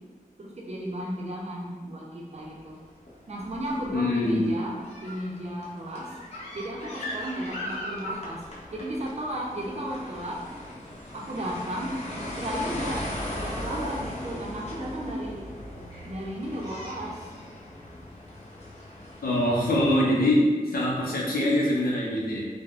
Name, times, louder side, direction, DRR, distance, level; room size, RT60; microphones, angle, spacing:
voice 1, 0.4-2.8 3.3-6.1 6.5-8.4 8.7-10.4 11.1-13.0 13.4-15.4 16.0-17.1, equal, 45° right, -2 dB, 0.6 m, -34 dB
sound 1, 2.4-2.6 3.0-20.0, left 1 dB, 45° left, 0.6 m, -38 dB
voice 2, 3.9-4.5 19.2-22.5, left 1 dB, 90° left, -3 dB, 0.6 m, -23 dB
3.3 x 2.1 x 2.4 m, 1.5 s
wide cardioid pair, 90°, 15 cm